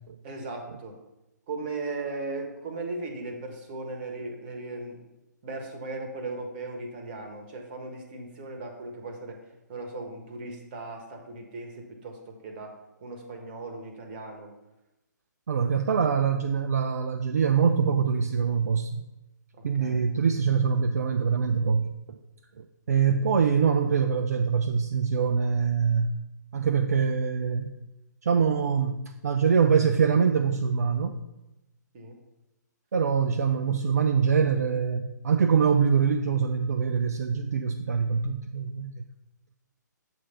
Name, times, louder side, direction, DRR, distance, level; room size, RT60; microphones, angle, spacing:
voice 1, 0.2-1.0 1.5-5.0 5.4-9.4 9.7-12.7 13.0-14.5 19.6-20.1 31.9-32.2, right 3 dB, 30° right, 3 dB, 1.1 m, -37 dB
voice 2, 15.5-19.0 19.6-21.9 22.6-26.1 26.5-27.8 28.2-31.2 32.9-39.0, right 6 dB, 55° right, 5 dB, 0.4 m, -24 dB
7.3 x 3.3 x 5.5 m, 0.97 s
figure-of-eight pair, 130°, 10 cm